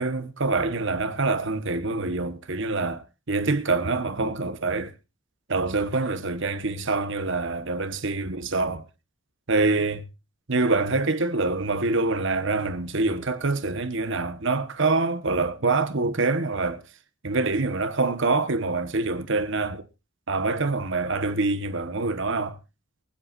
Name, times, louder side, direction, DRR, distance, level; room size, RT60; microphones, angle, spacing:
voice 1, 0.0-4.9 5.5-8.8 9.5-10.0 10.5-16.8 17.2-19.8 20.3-22.6, right 3 dB, 60° right, 1.3 m, -25 dB
23.5 x 8.1 x 2.6 m
head